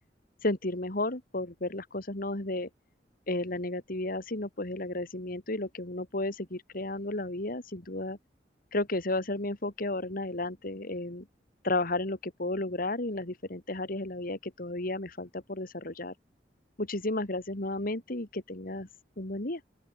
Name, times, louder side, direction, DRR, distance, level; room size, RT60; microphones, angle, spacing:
voice 1, 0.4-2.7 3.3-8.2 8.7-11.3 11.6-16.2 16.8-18.9 19.2-19.6, left 2 dB, 55° left, 2.8 m, -33 dB
open air
head